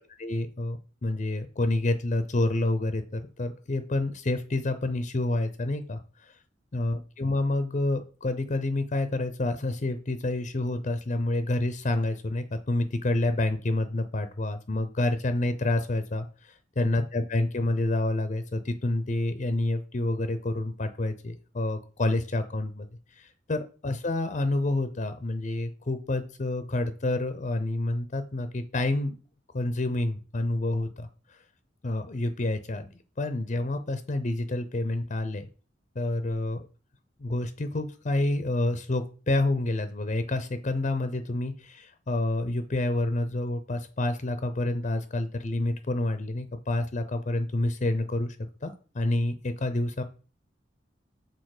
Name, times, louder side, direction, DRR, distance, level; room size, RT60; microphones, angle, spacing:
voice 1, 0.2-6.3 6.7-22.9 23.1-29.2 29.5-31.4 31.8-32.9 33.2-35.5 36.0-36.7 37.2-50.0, left 2 dB, 40° left, 9 dB, 0.6 m, -28 dB
6.6 x 4.0 x 4.8 m, 0.37 s
head